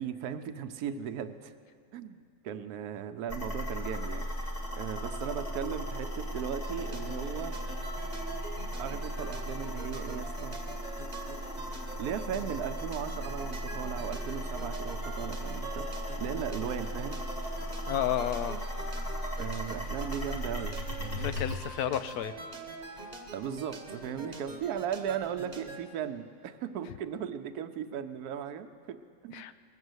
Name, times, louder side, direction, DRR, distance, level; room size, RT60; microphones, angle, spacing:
voice 1, 0.0-1.5 1.9-7.6 8.8-10.6 12.0-15.9 16.2-17.2 19.4-21.3 23.3-29.5, right 8 dB, 85° right, 9 dB, 1.2 m, -37 dB
sound 1, 3.3-21.6, equal, 35° left, 2.3 m, -37 dB
sound 2, 6.6-25.8, right 3 dB, 30° right, 1.0 m, -44 dB
voice 2, 17.9-18.6 21.2-22.3 29.3-29.6, left 10 dB, 85° left, 13 dB, 1.1 m, -31 dB
19.5 x 7.5 x 7.9 m, 2.3 s
omnidirectional pair, 1.6 m